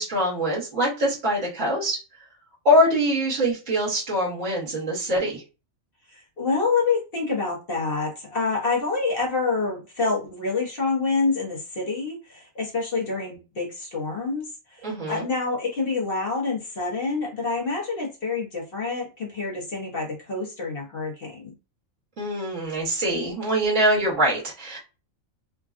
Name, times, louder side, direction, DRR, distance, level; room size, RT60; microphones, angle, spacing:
voice 1, 0.0-2.0 2.7-5.4 14.8-15.3 22.2-24.8, equal, 65° right, -5 dB, 1.6 m, -23 dB
voice 2, 6.1-21.5, left 4 dB, 45° left, -3 dB, 1.0 m, -27 dB
3.5 x 2.2 x 2.4 m, 0.31 s
omnidirectional pair, 1.4 m